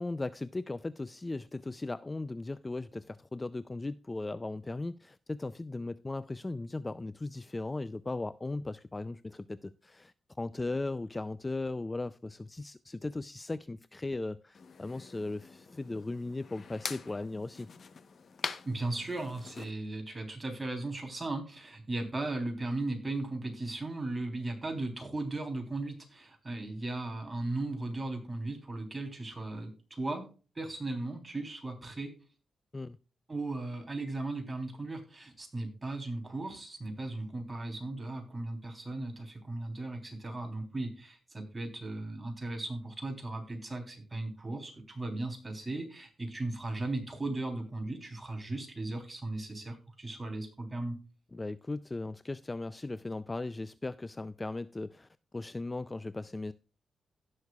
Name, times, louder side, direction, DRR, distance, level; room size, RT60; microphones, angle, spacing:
voice 1, 0.0-17.7 32.7-33.0 51.3-56.5, left 2 dB, 20° left, 0.4 m, -37 dB
sound 1, 14.5-19.7, left 5 dB, 55° left, 0.9 m, -44 dB
voice 2, 18.7-30.2 30.6-32.1 33.3-51.0, right 2 dB, 20° right, 3.4 m, -37 dB
17.0 x 6.5 x 2.3 m
cardioid pair, 100°, 0 cm